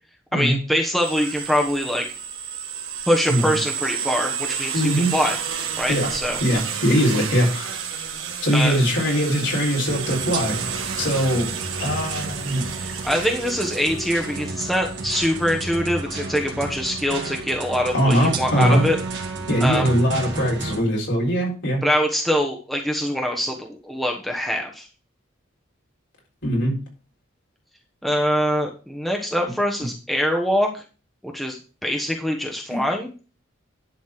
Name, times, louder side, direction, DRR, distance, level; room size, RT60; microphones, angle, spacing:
voice 1, 0.3-2.1 3.1-5.4 5.8-6.4 8.5-8.8 12.8-19.0 19.6-19.9 21.8-24.9 28.0-30.8 31.2-31.6 31.8-33.1, equal, ahead, 1 dB, 1.1 m, -23 dB
sound 1, 1.0-15.6, right 7 dB, 90° right, 1.8 m, -31 dB
voice 2, 4.7-5.1 5.9-6.1 6.4-7.8 8.4-11.5 11.8-12.7 17.9-18.9 19.5-21.8 26.4-26.8 32.7-32.8, equal, 65° left, -1 dB, 3.7 m, -21 dB
sound 2, 9.9-20.8, right 3 dB, 65° right, 2.0 m, -32 dB
11.0 x 4.2 x 5.9 m, 0.36 s
head